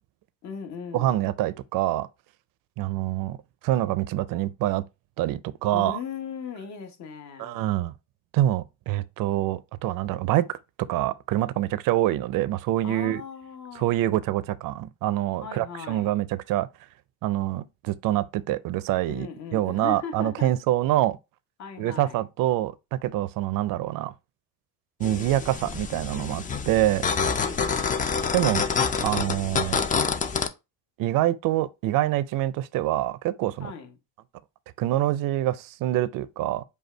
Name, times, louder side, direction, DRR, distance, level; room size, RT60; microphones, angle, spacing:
voice 1, 0.4-1.2 5.7-7.6 12.8-13.9 15.4-16.1 19.0-20.5 21.6-22.2 27.4-28.0 33.6-33.9, left 6 dB, 45° left, 1.0 m, -38 dB
voice 2, 0.9-2.1 2.8-3.4 3.6-4.8 5.2-6.0 7.4-7.9 8.3-13.2 13.8-16.7 17.2-19.3 19.5-21.2 21.8-24.1 25.0-27.1 28.3-28.7 29.0-29.8 31.0-33.7 34.8-36.6, right 14 dB, 60° right, 0.5 m, -25 dB
sound 1, 25.0-30.5, left 5 dB, 20° left, 0.4 m, -27 dB
5.3 x 2.3 x 4.3 m
cardioid pair, 115°, 38 cm